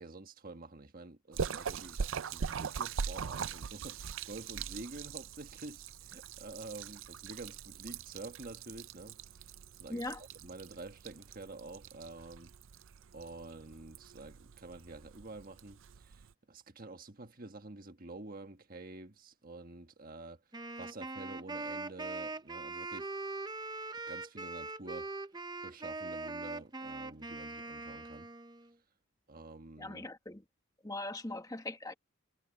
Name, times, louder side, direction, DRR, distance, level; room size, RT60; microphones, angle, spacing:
voice 1, 0.0-9.5 9.8-12.5 13.1-20.4 20.8-23.1 24.1-25.1 25.6-28.3 29.3-30.1, right 2 dB, 45° right, 1.5 m, -48 dB
Splash splatter, 1.3-16.3, right 6 dB, 65° right, 0.5 m, -42 dB
Wind instrument woodwind instrument, 20.5-28.7, right 3 dB, 20° right, 0.7 m, -41 dB
voice 2, 29.8-30.4 30.8-31.9, left 2 dB, 15° left, 1.6 m, -40 dB
head